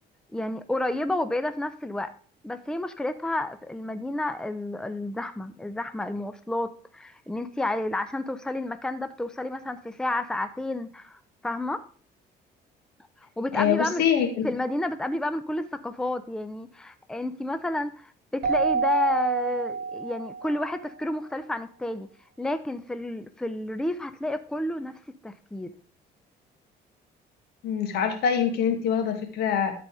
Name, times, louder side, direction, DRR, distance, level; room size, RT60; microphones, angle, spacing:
voice 1, 0.3-2.1 2.4-11.8 13.4-14.0 14.4-22.1 22.4-25.7, left 1 dB, 5° left, 10 dB, 0.6 m, -30 dB
voice 2, 13.5-14.5 27.6-29.7, left 8 dB, 80° left, 5 dB, 1.9 m, -24 dB
Keyboard (musical), 18.4-20.7, right 5 dB, 65° right, 1.4 m, -28 dB
12.5 x 4.2 x 4.8 m, 0.43 s
cardioid pair, 110°, 17 cm